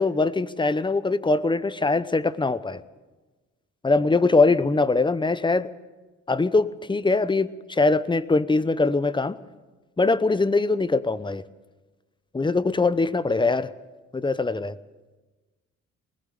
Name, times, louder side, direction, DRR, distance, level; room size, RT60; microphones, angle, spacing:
voice 1, 0.0-2.8 3.8-5.7 6.3-9.4 10.0-11.4 12.3-13.7 14.1-14.7, left 3 dB, 15° left, 16 dB, 0.8 m, -22 dB
20.5 x 19.0 x 6.8 m, 1.2 s
cardioid pair, 90°, 30 cm